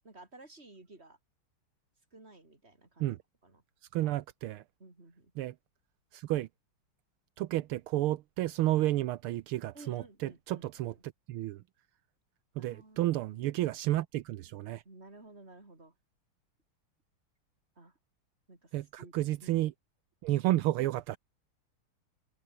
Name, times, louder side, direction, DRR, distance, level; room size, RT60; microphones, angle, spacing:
voice 1, 0.0-1.2 2.1-3.6 4.8-5.3 9.7-11.0 12.6-13.4 14.8-15.9 17.8-17.9 18.5-19.1 19.4-19.7, right 2 dB, 30° right, 4.7 m, -54 dB
voice 2, 3.9-4.6 5.4-5.5 6.1-6.5 7.4-10.9 11.3-11.6 12.6-14.8 18.7-19.7 20.2-21.2, right 15 dB, 80° right, 1.6 m, -31 dB
omnidirectional pair, 2.4 m